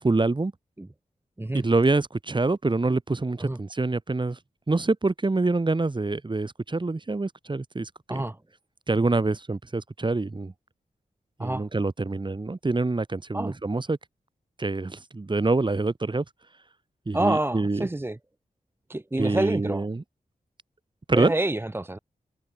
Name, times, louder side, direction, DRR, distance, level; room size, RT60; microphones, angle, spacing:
voice 1, 0.0-0.5 1.5-4.4 4.7-8.2 8.9-10.5 11.4-14.0 14.6-16.2 17.1-17.9 19.2-20.0 21.1-21.3, right 3 dB, 30° right, 6.4 m, -26 dB
voice 2, 17.1-18.2 18.9-19.9 21.1-22.0, right 1 dB, 15° right, 1.3 m, -27 dB
wide cardioid pair, 90°, 15 cm